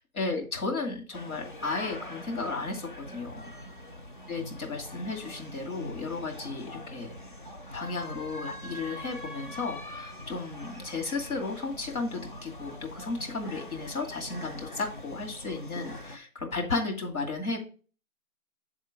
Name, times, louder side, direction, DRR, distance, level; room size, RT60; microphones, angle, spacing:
voice 1, 0.0-3.6 4.3-7.1 7.7-17.6, left 3 dB, 80° left, 1 dB, 2.4 m, -34 dB
sound 1, 1.1-16.2, left 1 dB, 35° left, 0.5 m, -43 dB
7.2 x 3.6 x 4.8 m, 0.38 s
figure-of-eight pair, 160°, 43 cm